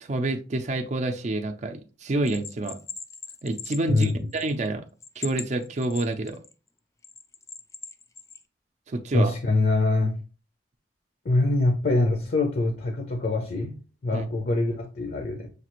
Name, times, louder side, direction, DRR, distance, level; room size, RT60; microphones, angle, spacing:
voice 1, 0.1-2.8 3.4-4.8 5.2-6.4 8.9-9.3 14.1-14.2, right 2 dB, 40° right, 0.5 m, -28 dB
Bell, 2.3-4.7 5.0-6.5 7.0-8.4, left 5 dB, 15° left, 0.3 m, -40 dB
voice 2, 3.9-4.3 9.1-10.2 11.2-13.8 14.0-15.5, left 2 dB, 55° left, 0.6 m, -24 dB
6.4 x 2.4 x 3.0 m
head